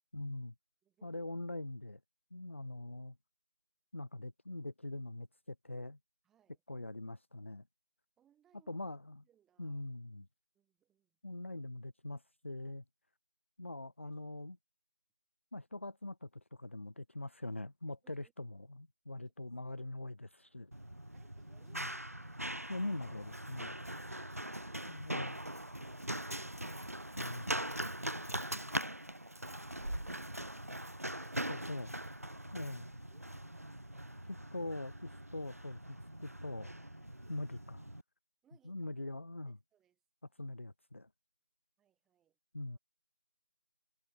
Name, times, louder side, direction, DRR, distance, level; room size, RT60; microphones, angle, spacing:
voice 1, 0.1-0.5 1.0-2.0 2.3-3.2 3.9-6.0 6.7-7.7 8.7-9.2 9.6-10.3 11.2-12.8 13.6-14.6 15.5-20.7 21.7-21.9 22.7-23.8 24.9-25.4 27.2-27.5 31.5-31.9 32.5-32.9 34.2-36.8 37.3-37.9 38.6-39.6 40.3-41.1 42.5-42.8, left 2 dB, 25° left, 1.4 m, -43 dB
voice 2, 0.8-1.2 6.2-6.6 8.2-8.8 9.2-9.9 10.5-11.2 18.0-18.3 19.2-19.5 21.1-22.6 33.1-33.3 38.4-38.9 39.4-40.0 41.8-42.4 42.7-42.8, right 10 dB, ahead, 6.6 m, -73 dB
Run, 20.7-38.0, right 1 dB, 25° right, 0.8 m, -42 dB
figure-of-eight pair, 175°, 17 cm